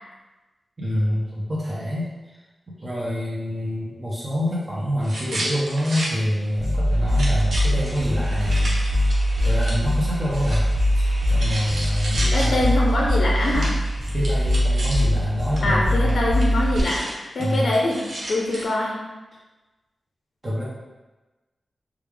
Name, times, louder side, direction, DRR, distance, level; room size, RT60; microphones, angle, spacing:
voice 1, 0.8-2.4 2.8-8.8 9.4-12.7 14.1-16.2 17.4-17.7 20.4-20.6, equal, 25° right, -7 dB, 0.6 m, -26 dB
sound 1, 5.0-6.1 6.5-6.6 6.9-15.2 15.5-15.6 15.9-18.7, right 1 dB, 65° right, 0.7 m, -34 dB
sound 2, 6.6-16.8, equal, 50° right, 1.2 m, -22 dB
voice 2, 12.3-13.8 15.6-18.0 18.3-19.0, left 1 dB, 70° left, -2 dB, 0.4 m, -23 dB
3.2 x 2.3 x 3.3 m, 1.2 s
wide cardioid pair, 160°, 0 cm